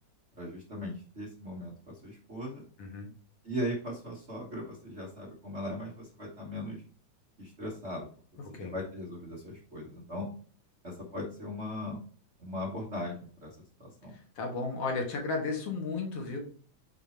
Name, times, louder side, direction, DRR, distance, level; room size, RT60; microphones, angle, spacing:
voice 1, 0.4-2.6 3.4-6.8 7.4-8.1 8.5-10.3 10.8-12.0 12.4-13.5 13.8-14.1, left 1 dB, 40° right, -4 dB, 0.9 m, -38 dB
voice 2, 2.8-3.1 8.5-8.7 14.4-16.4, left 4 dB, 60° left, 2 dB, 2.1 m, -33 dB
5.4 x 4.5 x 4.3 m, 0.43 s
omnidirectional pair, 3.4 m